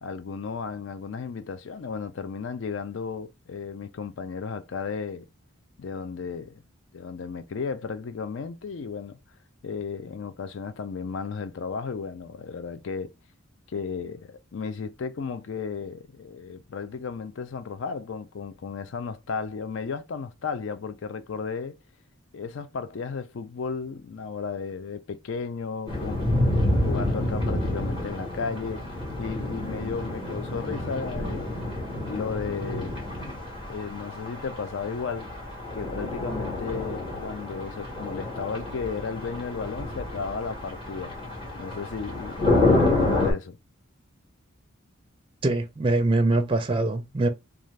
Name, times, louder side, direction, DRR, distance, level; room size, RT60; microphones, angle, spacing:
voice 1, 0.0-5.3 5.8-6.5 6.9-9.2 9.6-13.1 13.7-21.7 22.3-26.3 26.9-28.8 29.2-31.6 32.1-33.0 33.7-35.3 35.7-41.1 41.6-43.6, left 5 dB, 65° left, 0.4 m, -34 dB
sound 1, 25.9-43.3, left 2 dB, 25° left, 1.2 m, -28 dB
voice 2, 45.4-47.3, right 2 dB, 25° right, 0.4 m, -23 dB
2.6 x 2.3 x 3.2 m
head